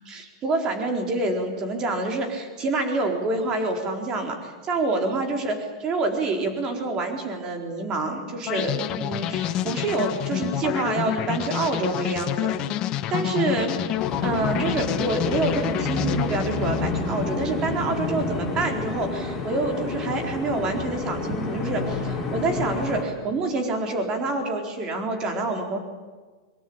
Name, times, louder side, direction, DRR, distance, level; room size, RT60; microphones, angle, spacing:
voice 1, 0.0-12.6 13.1-13.7 14.2-25.8, right 3 dB, 25° right, 4 dB, 4.2 m, -27 dB
sound 1, 8.5-17.5, left 12 dB, 30° left, 1.2 m, -28 dB
sound 2, 14.0-23.0, left 3 dB, 5° left, 6.5 m, -29 dB
23.5 x 23.0 x 8.9 m, 1.4 s
supercardioid pair, 165°, 3 cm